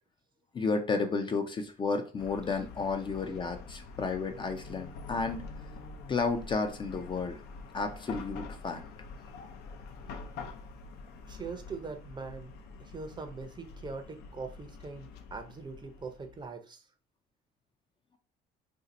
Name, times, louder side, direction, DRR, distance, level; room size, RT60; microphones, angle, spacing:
voice 1, 0.5-5.4 6.1-7.4 7.7-8.9, left 4 dB, 30° left, 6 dB, 0.4 m, -32 dB
Chatter / Car passing by / Traffic noise roadway noise, 2.2-16.5, left 4 dB, 75° left, 0.6 m, -46 dB
voice 2, 11.3-12.5 12.8-16.9, right 4 dB, 25° right, 6 dB, 0.6 m, -42 dB
2.6 x 2.4 x 4.0 m, 0.36 s
cardioid pair, 110°, 17 cm